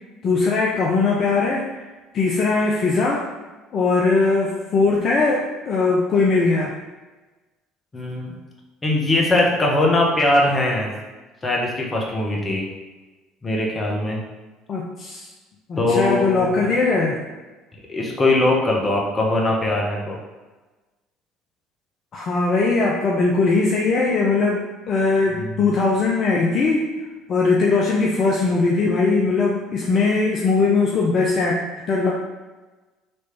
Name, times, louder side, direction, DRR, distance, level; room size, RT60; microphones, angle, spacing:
voice 1, 0.2-1.7 2.1-3.2 3.7-6.7 14.7-15.3 15.7-17.2 22.1-26.9 27.3-32.1, left 3 dB, 45° left, -2 dB, 0.6 m, -20 dB
voice 2, 7.9-8.3 8.8-10.9 11.4-12.7 13.4-14.2 15.8-16.6 17.9-20.2 25.4-25.6, left 2 dB, 25° left, -1 dB, 1.2 m, -21 dB
4.2 x 3.2 x 3.3 m, 1.2 s
hypercardioid pair, 60°, 0 cm